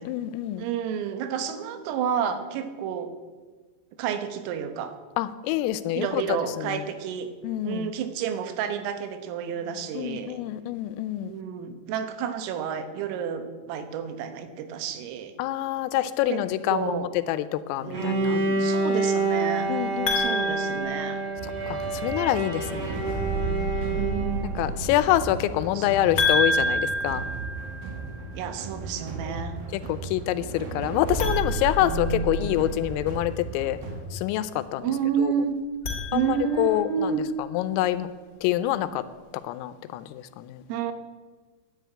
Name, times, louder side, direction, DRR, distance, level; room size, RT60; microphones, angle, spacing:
voice 1, 0.0-0.7 5.2-6.8 7.4-7.9 10.0-11.4 15.4-18.4 19.7-20.6 21.7-23.0 24.6-27.2 29.3-29.4 29.7-33.8 34.1-34.9 35.2-35.3 36.1-37.1 37.5-38.1 38.4-39.0 39.4-40.6, left 13 dB, 85° left, 13 dB, 3.3 m, -26 dB
voice 2, 0.6-3.1 4.0-5.0 6.0-7.3 7.6-10.4 11.3-15.3 16.3-16.4 16.7-17.1 17.8-19.8 20.1-21.2 22.8-25.0 25.7-26.2 28.4-29.6 31.8-32.7 34.8-35.6 36.1-37.3 40.7-40.9, right 7 dB, 85° right, 8 dB, 3.9 m, -30 dB
Bowed string instrument, 17.9-24.7, right 3 dB, 40° right, 2.7 m, -28 dB
sound 1, 20.0-21.7 26.2-28.2 31.1-32.7 35.6-36.8, left 2 dB, 35° left, 1.9 m, -29 dB
sound 2, 21.4-34.0, right 3 dB, 70° right, 4.3 m, -33 dB
11.5 x 10.0 x 9.2 m, 1.4 s
omnidirectional pair, 5.8 m